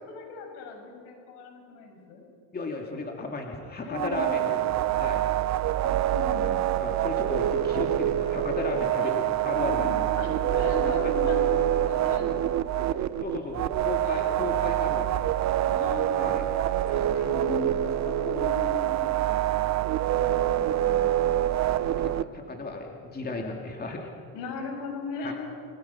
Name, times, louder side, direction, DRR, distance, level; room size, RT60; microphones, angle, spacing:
voice 1, 0.1-2.2 3.8-4.7 5.8-6.6 9.0-9.1 9.6-13.0 14.0-14.3 15.6-19.5 20.2-21.4 22.3-22.8 24.3-25.3, left 4 dB, 80° left, 2 dB, 6.9 m, -38 dB
voice 2, 2.5-4.6 5.0-5.2 6.8-9.1 9.4-9.9 11.0-11.1 13.2-15.3 16.1-16.5 17.0-17.2 20.1-20.4 21.3-24.1 25.2-25.3, left 3 dB, 20° left, 1 dB, 2.4 m, -35 dB
sound 1, 3.9-22.2, right 12 dB, 40° right, 0.7 m, -26 dB
29.0 x 21.0 x 5.8 m, 2.6 s
cardioid pair, 130°, 42 cm